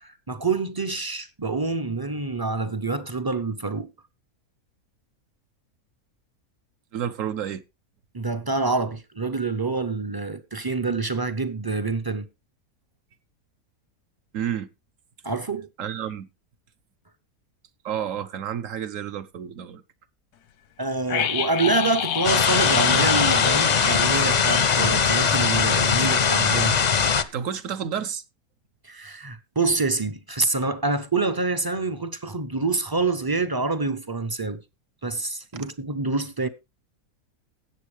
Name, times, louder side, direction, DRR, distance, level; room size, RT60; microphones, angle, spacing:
voice 1, 0.0-3.9 8.1-12.3 15.2-15.7 20.8-26.8 28.8-34.6 35.0-36.5, right 3 dB, 25° right, 0.4 m, -26 dB
voice 2, 6.9-7.6 14.3-14.7 15.8-16.3 17.8-19.8 27.3-28.2 35.5-35.6, right 9 dB, 65° right, 1.1 m, -30 dB
sound 1, 21.1-25.9 26.2-26.3, left 9 dB, 85° left, 1.4 m, -29 dB
sound 2, 22.2-27.2, left 6 dB, 45° left, 0.5 m, -20 dB
17.0 x 7.1 x 3.2 m
omnidirectional pair, 1.6 m